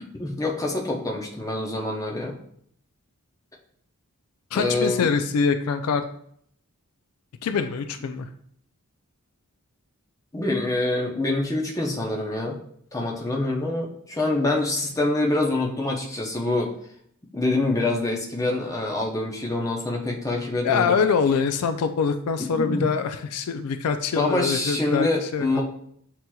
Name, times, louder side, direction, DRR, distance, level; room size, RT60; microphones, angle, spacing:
voice 1, 0.2-2.4 4.5-5.1 10.3-12.6 12.9-16.7 17.3-21.0 22.6-22.9 24.2-25.6, left 2 dB, 15° left, -1 dB, 0.7 m, -25 dB
voice 2, 4.5-6.0 7.4-8.3 20.6-25.6, left 5 dB, 75° left, 8 dB, 0.4 m, -24 dB
7.8 x 2.9 x 2.3 m, 0.66 s
head